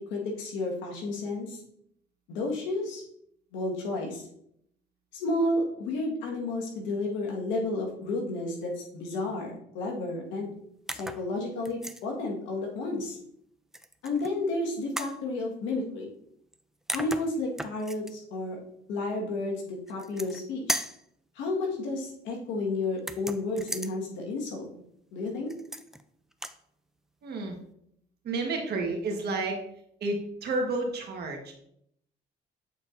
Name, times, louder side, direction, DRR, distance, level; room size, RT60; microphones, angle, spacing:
voice 1, 0.1-1.6 2.3-3.0 3.5-4.2 5.1-10.5 10.9-13.2 14.0-16.1 16.9-18.6 18.9-20.8 21.3-24.7 25.1-25.5, left 2 dB, 85° left, 0 dB, 1.5 m, -31 dB
sound 1, 10.9-11.3 11.6-12.0 13.7-14.3 15.0-15.2 16.5-16.6 16.9-18.1 19.9-20.4 20.7-21.0 23.0-23.9 25.5-26.0 26.3-26.6, right 1 dB, ahead, 0.3 m, -35 dB
voice 2, 27.2-27.6 28.2-29.6 30.0-31.5, right 2 dB, 60° right, 2 dB, 1.4 m, -31 dB
8.1 x 4.4 x 2.6 m, 0.72 s
supercardioid pair, 80°, 19 cm